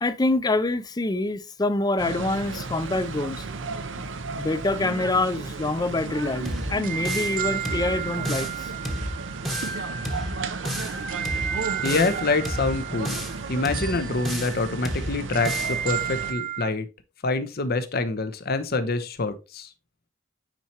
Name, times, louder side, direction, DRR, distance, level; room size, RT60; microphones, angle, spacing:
voice 1, 0.0-3.5 4.0-4.1 4.3-8.7, left 2 dB, 20° left, 0.5 m, -26 dB
sound 1, 2.0-16.3, right 4 dB, 80° right, 0.7 m, -34 dB
sound 2, 6.2-16.7, right 9 dB, 50° right, 0.7 m, -34 dB
sound 3, 6.5-7.4 7.7-8.6 8.9-9.8 10.1-11.0 11.3-12.2 12.5-13.4 13.7-14.6 14.9-15.8, equal, ahead, 1.0 m, -32 dB
voice 2, 11.8-13.2 13.5-16.9 17.2-19.7, left 3 dB, 55° left, 0.8 m, -26 dB
9.0 x 4.4 x 2.9 m
head